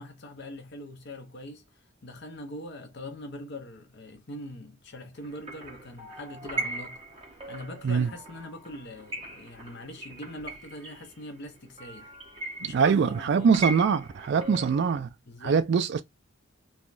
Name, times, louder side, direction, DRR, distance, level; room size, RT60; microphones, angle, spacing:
voice 1, 0.0-1.7 2.0-7.0 7.5-12.1 12.6-13.6 14.4-14.6 15.3-15.6, left 1 dB, 55° left, 0.7 m, -42 dB
sound 1, 5.2-15.0, right 2 dB, 25° right, 1.1 m, -39 dB
voice 2, 12.7-15.1 15.4-16.0, right 6 dB, 55° right, 0.3 m, -23 dB
3.2 x 2.2 x 2.5 m
head